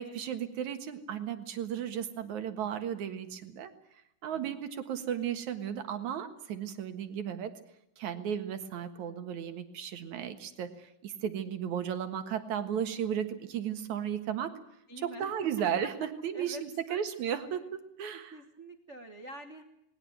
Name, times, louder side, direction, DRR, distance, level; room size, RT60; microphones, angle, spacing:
voice 1, 0.0-3.7 4.2-7.5 8.0-14.6 15.0-18.4, right 9 dB, 65° right, 8 dB, 2.8 m, -35 dB
voice 2, 14.9-15.4 16.3-16.6 16.9-17.0 18.1-19.6, right 1 dB, 85° right, 7 dB, 0.6 m, -47 dB
20.0 x 18.5 x 9.1 m, 0.79 s
omnidirectional pair, 3.8 m